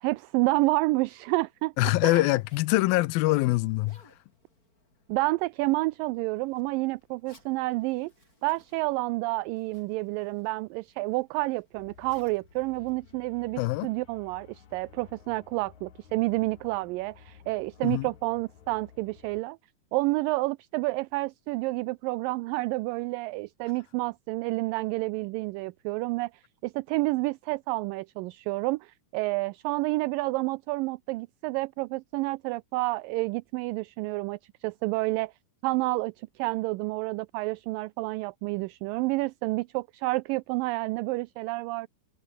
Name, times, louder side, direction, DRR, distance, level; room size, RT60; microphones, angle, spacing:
voice 1, 0.0-2.3 5.1-8.1 8.4-19.6 19.9-35.3 35.6-41.9, right 22 dB, 80° right, 2.1 m, -29 dB
Zipper (clothing), 1.1-13.8, left 2 dB, 20° left, 8.1 m, -64 dB
voice 2, 1.8-4.0 13.6-13.9 17.8-18.1, left 20 dB, 80° left, 2.4 m, -24 dB
sound 1, 11.7-19.4, left 8 dB, 55° left, 3.3 m, -54 dB
omnidirectional pair, 4.2 m